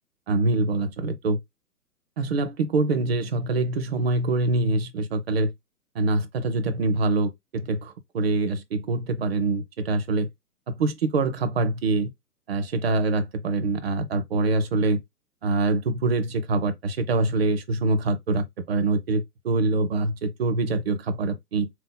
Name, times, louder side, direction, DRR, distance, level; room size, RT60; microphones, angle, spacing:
voice 1, 0.3-1.4 2.2-5.5 5.9-10.3 10.7-12.1 12.5-15.0 15.4-21.7, right 2 dB, 40° right, 0.7 m, -24 dB
3.7 x 2.9 x 3.8 m
figure-of-eight pair, 130°, 47 cm